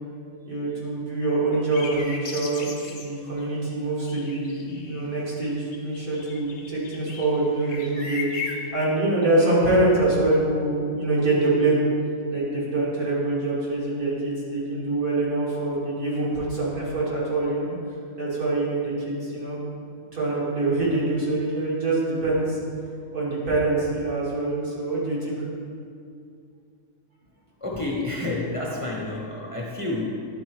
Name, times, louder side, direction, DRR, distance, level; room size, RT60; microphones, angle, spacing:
voice 1, 0.4-11.8 12.3-17.7 18.2-19.6 20.1-22.6 23.1-25.4, right 2 dB, 90° right, -8 dB, 2.6 m, -25 dB
sound 1, 1.5-3.7 4.0-5.0 5.4-8.7, left 4 dB, 55° left, 1.1 m, -37 dB
voice 2, 27.6-30.2, left 2 dB, 30° left, -3 dB, 0.7 m, -29 dB
11.0 x 3.9 x 4.6 m, 2.4 s
omnidirectional pair, 1.5 m